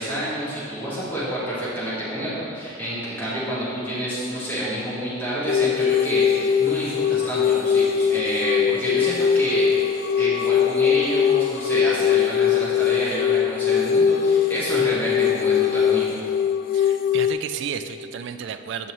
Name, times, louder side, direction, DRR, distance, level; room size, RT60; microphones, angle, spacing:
voice 1, 0.0-9.9 10.2-16.2, equal, 10° left, -10 dB, 1.6 m, -28 dB
sound 1, 5.5-17.3, left 8 dB, 45° left, 0.3 m, -21 dB
voice 2, 16.7-18.9, right 7 dB, 60° right, 10 dB, 0.3 m, -32 dB
8.2 x 5.3 x 3.0 m, 2.5 s
head